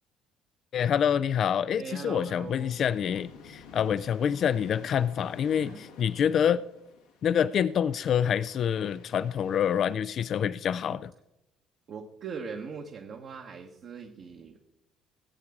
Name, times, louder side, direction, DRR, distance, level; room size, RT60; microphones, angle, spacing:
voice 1, 0.7-6.6 7.2-11.1, left 8 dB, 55° left, 16 dB, 0.3 m, -27 dB
voice 2, 1.8-2.7 5.6-5.8 8.7-8.9 11.9-14.6, right 6 dB, 55° right, 2 dB, 1.2 m, -40 dB
sound 1, 2.0-10.0, left 5 dB, 85° left, 1.5 m, -51 dB
19.0 x 8.4 x 3.6 m, 0.90 s
hypercardioid pair, 55°, 0 cm